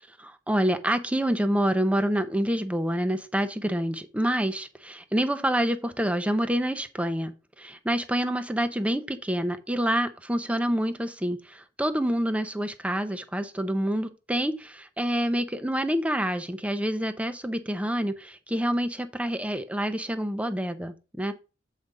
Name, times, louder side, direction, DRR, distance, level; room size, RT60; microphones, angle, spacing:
voice 1, 0.2-21.3, equal, 5° right, 0.7 m, -27 dB
8.2 x 5.1 x 3.8 m
head